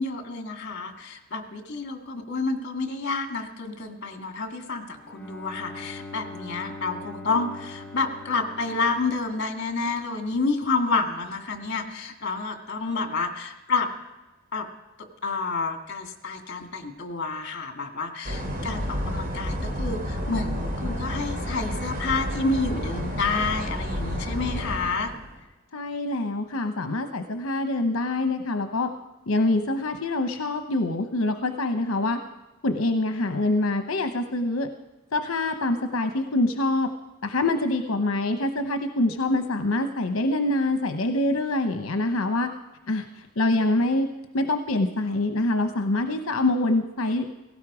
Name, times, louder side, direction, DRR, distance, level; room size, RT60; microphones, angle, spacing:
voice 1, 0.0-13.9 14.5-14.7 15.0-25.1, left 4 dB, 55° left, 5 dB, 1.9 m, -29 dB
Bowed string instrument, 4.9-9.9, left 2 dB, 5° left, 1.0 m, -42 dB
sound 1, 18.2-25.4, equal, 40° right, 3.0 m, -30 dB
voice 2, 25.7-28.9 29.3-32.2 32.6-34.7 35.1-36.9 37.2-42.5 42.9-44.1 44.3-47.3, left 2 dB, 70° left, 7 dB, 0.9 m, -25 dB
17.5 x 16.5 x 4.9 m, 1.1 s
head